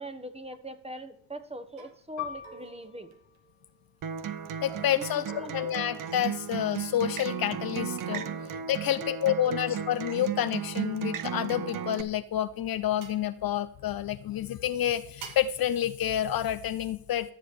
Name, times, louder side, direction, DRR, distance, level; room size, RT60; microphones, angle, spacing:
voice 1, 0.0-3.1 4.9-5.6 9.0-9.1 9.4-9.5, right 1 dB, 15° right, 8 dB, 1.2 m, -42 dB
sound 1, 1.1-1.3 1.8-2.0 2.4-3.8 4.7-6.9 8.1-9.5 11.0-12.3 13.0-13.3 15.2-15.6, right 5 dB, 80° right, 1.4 m, -49 dB
Piano, 2.2-7.2 7.6-7.7 8.5-8.9, left 11 dB, 75° left, 1.5 m, -45 dB
Acoustic guitar, 4.0-12.0, right 8 dB, 45° right, 0.8 m, -35 dB
voice 2, 4.6-8.2 8.7-17.3, left 11 dB, 50° left, 12 dB, 0.7 m, -29 dB
13.0 x 7.5 x 3.2 m, 0.64 s
hypercardioid pair, 40°, 45 cm